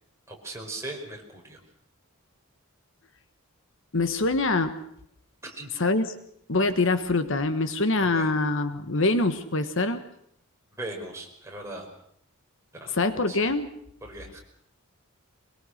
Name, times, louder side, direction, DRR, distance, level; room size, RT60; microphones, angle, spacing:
voice 1, 0.3-1.6 5.4-5.7 8.0-8.3 10.7-11.8 12.7-13.4 14.0-14.4, right 2 dB, 15° right, 0 dB, 5.2 m, -39 dB
voice 2, 3.9-4.7 5.8-6.1 6.5-10.0 12.9-13.7, left 2 dB, 60° left, 10 dB, 1.3 m, -24 dB
23.0 x 22.0 x 6.5 m, 0.71 s
head